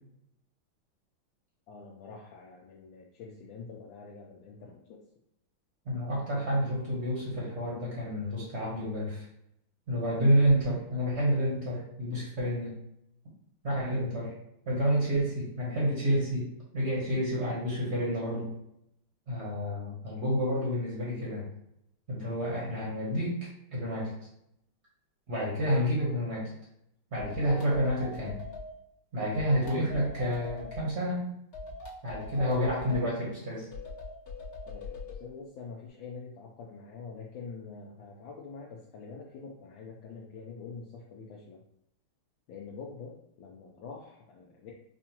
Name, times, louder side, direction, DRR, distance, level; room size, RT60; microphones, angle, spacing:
voice 1, 1.7-5.0 34.7-41.6 42.5-44.7, left 5 dB, 75° left, -2 dB, 1.2 m, -45 dB
voice 2, 5.8-9.3 9.9-12.7 13.6-14.3 14.7-16.5 16.7-18.5 19.3-21.5 22.1-23.4 23.7-24.1 25.3-26.5 27.1-28.4 29.1-31.3 32.0-33.7, equal, 45° right, -5 dB, 1.0 m, -29 dB
sound 1, 27.2-28.7 29.3-30.9 31.5-33.1 33.7-35.2, left 2 dB, 45° left, 1.0 m, -42 dB
5.0 x 2.3 x 2.9 m, 0.77 s
omnidirectional pair, 2.3 m